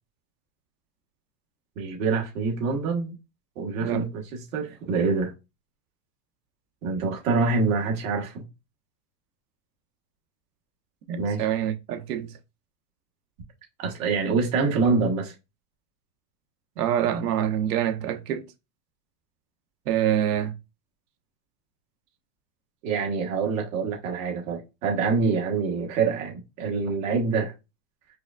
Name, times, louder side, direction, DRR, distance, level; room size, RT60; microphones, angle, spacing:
voice 1, 1.8-3.1 3.6-5.3 6.8-8.4 11.2-11.5 13.8-15.3 22.8-27.5, right 4 dB, 55° right, 1.3 m, -26 dB
voice 2, 11.1-12.3 16.8-18.4 19.9-20.5, right 10 dB, 70° right, 0.9 m, -26 dB
4.9 x 2.4 x 2.3 m
supercardioid pair, 180°, 49 cm